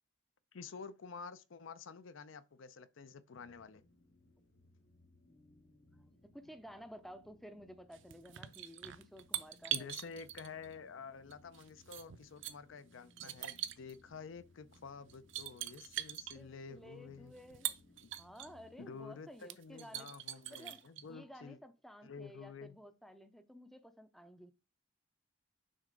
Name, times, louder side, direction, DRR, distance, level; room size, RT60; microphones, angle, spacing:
voice 1, 0.5-3.8 9.7-17.3 18.0-18.1 18.8-21.6 22.0-22.8, left 5 dB, 75° left, 0.5 m, -50 dB
sound 1, 3.3-18.8, left 2 dB, 45° left, 1.2 m, -66 dB
voice 2, 5.3-9.9 16.3-17.7 18.2-20.1 20.5-24.5, equal, ahead, 0.4 m, -54 dB
sound 2, 7.9-10.7 11.3-12.5 13.1-14.0 14.7-14.8 15.1-16.4 17.4-18.5 19.0-19.1 19.4-21.0, right 12 dB, 65° right, 0.5 m, -42 dB
6.4 x 4.5 x 3.8 m
head